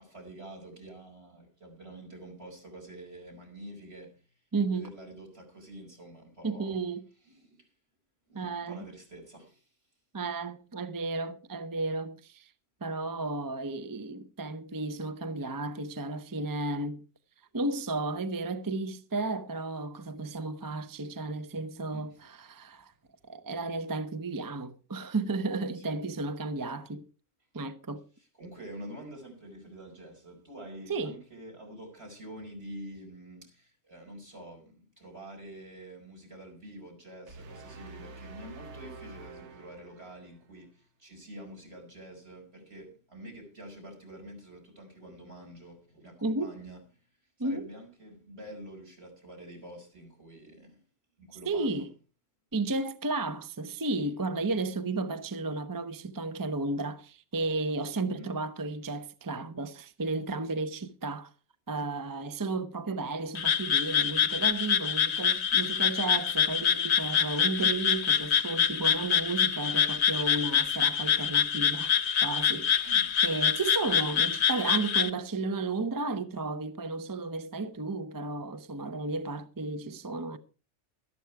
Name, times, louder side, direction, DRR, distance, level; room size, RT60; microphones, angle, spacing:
voice 1, 0.0-4.2 4.6-6.8 7.2-7.7 8.3-9.7 21.9-22.0 25.7-25.9 28.4-46.8 47.4-50.8 51.2-51.9 58.2-58.3 72.9-73.2, right 1 dB, 65° right, 5.3 m, -47 dB
voice 2, 4.5-4.9 6.4-7.1 8.3-8.9 10.1-12.5 12.8-17.0 17.5-22.9 23.2-27.0 27.5-28.0 30.9-31.2 46.2-46.5 47.4-47.7 51.5-51.9 52.5-61.3 61.7-71.9 72.2-72.9 73.2-80.4, right 3 dB, 25° right, 0.6 m, -33 dB
sound 1, 37.3-40.5, right 3 dB, 85° right, 1.4 m, -47 dB
Frog, 63.3-75.1, left 8 dB, 75° left, 1.2 m, -26 dB
13.0 x 12.0 x 4.5 m
omnidirectional pair, 1.1 m